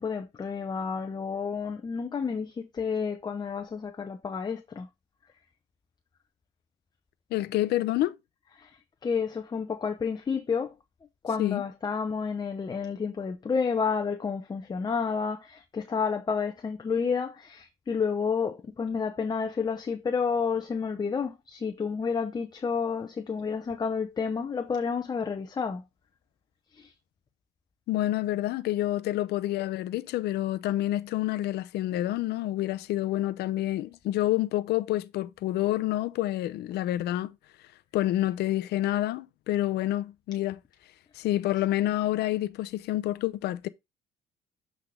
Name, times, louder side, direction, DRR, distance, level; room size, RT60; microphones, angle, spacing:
voice 1, 0.0-4.9 8.6-8.7 9.0-10.7 11.2-25.8 26.7-26.9, left 5 dB, 25° left, 0.7 m, -30 dB
voice 2, 7.3-8.1 11.4-11.6 27.9-37.3 37.9-40.6 41.2-43.7, left 14 dB, 75° left, 0.6 m, -28 dB
8.2 x 3.5 x 3.6 m
cardioid pair, 110°, 17 cm